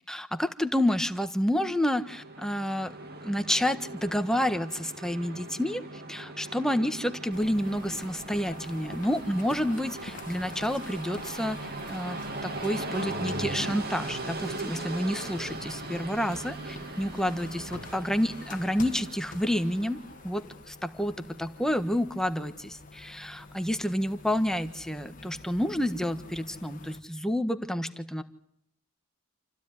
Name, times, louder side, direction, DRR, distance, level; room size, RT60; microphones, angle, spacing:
voice 1, 0.1-2.9 3.2-20.0 20.2-28.2, equal, 5° left, 9 dB, 1.4 m, -29 dB
Train, 1.6-20.2, right 2 dB, 45° right, 3.0 m, -39 dB
sound 1, 7.3-27.0, left 3 dB, 40° left, 1.7 m, -48 dB
28.5 x 16.0 x 9.8 m, 0.73 s
head